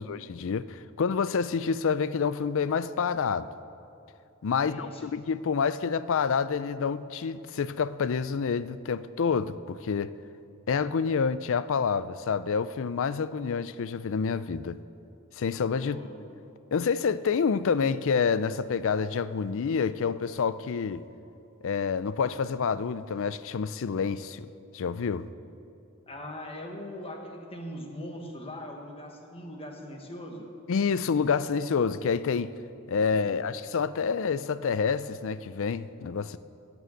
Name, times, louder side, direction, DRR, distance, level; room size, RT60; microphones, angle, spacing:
voice 1, 0.0-3.5 4.4-10.1 10.7-14.8 15.4-16.0 16.7-21.0 21.6-24.5 24.7-25.3 30.7-32.5 32.9-36.4, left 5 dB, 65° left, 0.4 m, -28 dB
voice 2, 4.6-5.1 15.8-16.3 26.1-30.5 33.1-33.5, left 1 dB, 25° left, 1.4 m, -41 dB
11.0 x 9.2 x 7.8 m
head